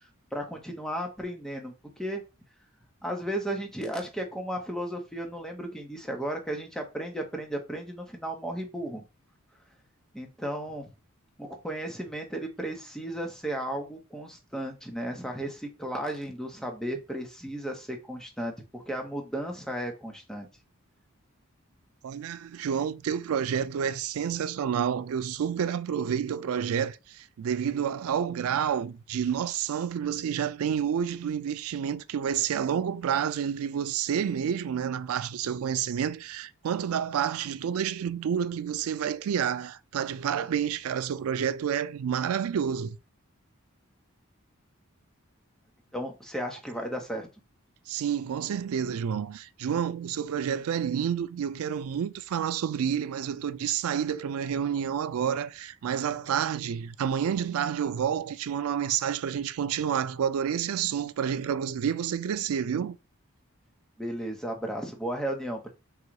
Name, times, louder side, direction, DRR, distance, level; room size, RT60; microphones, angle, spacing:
voice 1, 0.3-2.2 3.0-9.1 10.1-10.8 11.4-20.5 45.9-47.3 64.0-65.7, right 1 dB, ahead, 0.8 m, -34 dB
voice 2, 22.0-43.0 47.9-63.0, right 8 dB, 80° right, 0.3 m, -29 dB
3.9 x 2.3 x 4.6 m
head